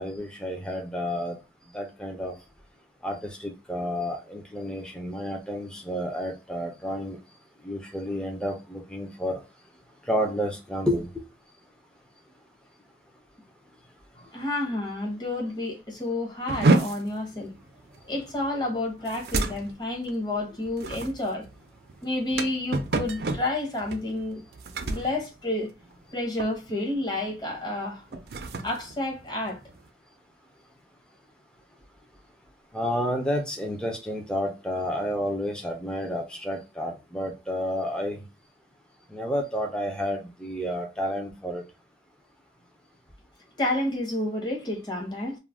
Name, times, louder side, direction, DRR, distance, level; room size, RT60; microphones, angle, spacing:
voice 1, 0.0-1.4 1.7-2.4 3.0-7.2 7.6-9.4 10.0-11.1 32.7-38.2 39.1-41.6, equal, 5° left, 0.4 m, -30 dB
voice 2, 14.3-17.5 18.1-21.5 22.0-24.4 24.7-25.7 26.1-28.2 28.6-29.6 43.6-45.4, left 2 dB, 25° left, 0.8 m, -30 dB
sound 1, 16.5-26.1 26.4-26.8 27.2-27.4 28.0-29.9, right 3 dB, 65° right, 0.4 m, -30 dB
2.3 x 2.0 x 3.3 m
head